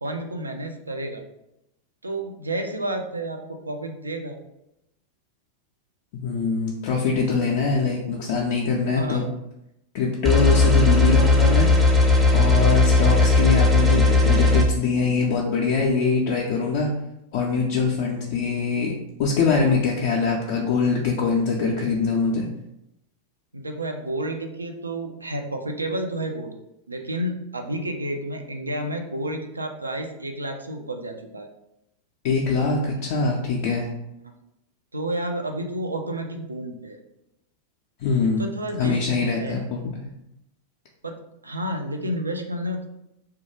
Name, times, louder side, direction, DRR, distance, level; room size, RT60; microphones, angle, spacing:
voice 1, 0.0-1.2 2.0-4.4 8.9-9.2 18.0-18.1 23.5-26.5 26.9-31.5 34.9-37.0 38.4-39.5 41.0-42.9, right 1 dB, 80° right, 4 dB, 0.3 m, -30 dB
voice 2, 6.1-9.3 9.9-11.7 12.3-16.9 17.3-18.9 19.2-22.5 32.2-33.9 38.0-38.5 38.8-40.1, left 4 dB, 50° left, -2 dB, 0.4 m, -23 dB
sound 1, 10.3-14.6, left 3 dB, 10° right, 0.5 m, -17 dB
2.2 x 2.2 x 3.0 m, 0.85 s
figure-of-eight pair, 90°, 0 cm